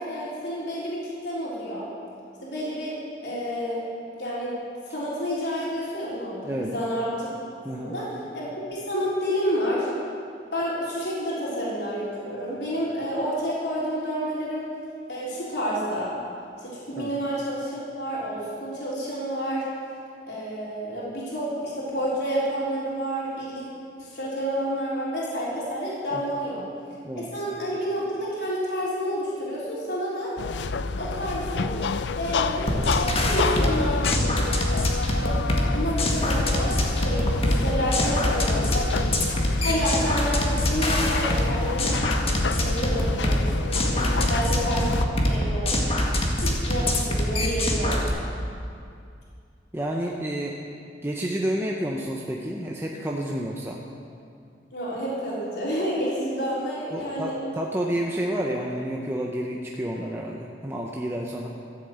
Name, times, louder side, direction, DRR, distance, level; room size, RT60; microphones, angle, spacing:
voice 1, 0.0-1.9 2.4-2.9 3.2-3.9 4.2-4.6 4.9-7.3 7.8-8.1 8.3-9.9 10.5-14.7 15.1-16.2 16.6-19.6 20.3-23.6 24.0-26.6 27.2-30.3 31.0-31.7 32.1-34.7 35.2-35.4 35.7-38.8 39.6-42.1 42.6-43.7 44.2-44.9 45.2-45.8 46.4-48.2 54.7-57.4, equal, 70° left, -7 dB, 3.8 m, -29 dB
voice 2, 7.6-8.0 17.0-17.1 27.0-27.3 43.9-44.3 49.7-50.6 51.0-53.8 56.9-61.5, right 1 dB, 15° right, -1 dB, 0.8 m, -30 dB
sound 1, 30.4-45.1, left 4 dB, 85° left, 0.5 m, -29 dB
sound 2, 32.7-48.1, left 1 dB, 35° left, 1.6 m, -24 dB
14.0 x 7.8 x 8.0 m, 2.4 s
head